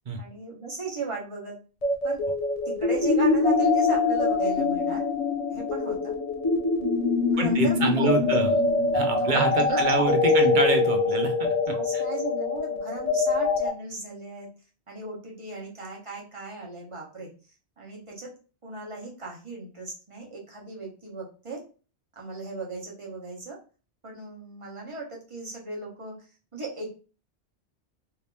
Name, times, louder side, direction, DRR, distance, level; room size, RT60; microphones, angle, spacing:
voice 1, 0.2-1.6 2.0-2.2 2.6-5.0 5.5-6.1 7.3-8.5 9.2-10.6 11.7-14.5 14.9-17.3 17.8-18.3 18.6-21.6 22.2-23.6 24.0-26.1 26.5-26.9, right 3 dB, 30° right, -2 dB, 1.1 m, -36 dB
sound 1, 1.8-13.7, left 4 dB, 40° left, 0.7 m, -24 dB
voice 2, 7.4-8.5 8.9-12.0, right 3 dB, 50° right, 4 dB, 0.7 m, -26 dB
3.4 x 2.8 x 3.3 m, 0.35 s
omnidirectional pair, 1.1 m